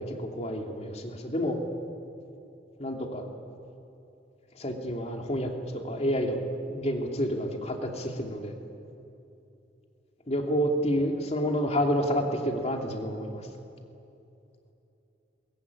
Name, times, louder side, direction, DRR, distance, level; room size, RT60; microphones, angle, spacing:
voice 1, 0.0-1.6 2.8-3.3 4.6-5.5 5.8-6.4 6.7-8.5 10.3-13.3, equal, 40° left, 2 dB, 2.8 m, -29 dB
22.5 x 20.5 x 9.7 m, 2.8 s
head